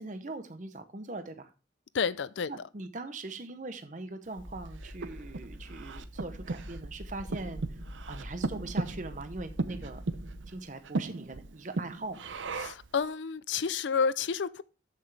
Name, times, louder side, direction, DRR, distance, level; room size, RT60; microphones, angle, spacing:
voice 1, 0.0-1.5 2.5-7.8 8.1-10.0 10.5-12.3, right 2 dB, 40° right, 0.8 m, -41 dB
voice 2, 1.9-2.5 12.6-14.6, left 6 dB, 75° left, 0.5 m, -30 dB
sound 1, 4.4-10.4, equal, 10° left, 2.4 m, -45 dB
Breathing, 4.4-12.9, right 3 dB, 85° right, 0.7 m, -37 dB
13.5 x 5.8 x 3.3 m
head